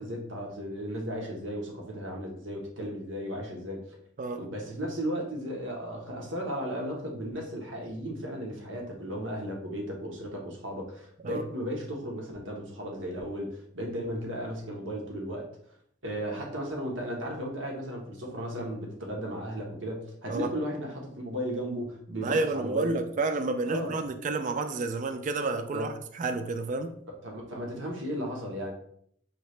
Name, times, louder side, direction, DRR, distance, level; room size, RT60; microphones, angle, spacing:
voice 1, 0.0-4.0 4.4-15.5 16.0-22.9 23.7-24.0 25.7-25.9 27.1-28.7, equal, 85° right, 0 dB, 1.1 m, -35 dB
voice 2, 22.2-26.9, right 3 dB, 40° right, 9 dB, 0.4 m, -30 dB
5.7 x 2.8 x 3.2 m, 0.66 s
head